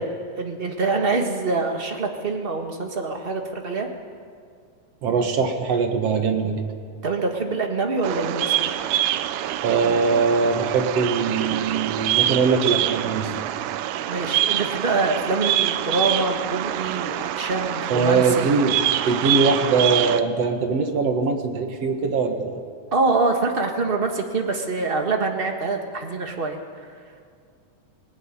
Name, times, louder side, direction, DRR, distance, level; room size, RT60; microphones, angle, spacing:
voice 1, 0.0-3.9 7.0-8.7 14.1-18.5 22.9-26.6, right 3 dB, 25° right, 3 dB, 1.2 m, -25 dB
voice 2, 5.0-6.7 9.6-13.3 17.9-22.6, right 4 dB, 55° right, 6 dB, 2.4 m, -22 dB
Bird vocalization bird call bird song, 8.0-20.2, right 12 dB, 85° right, 2.3 m, -25 dB
20.0 x 18.5 x 9.9 m, 2.2 s
omnidirectional pair, 3.6 m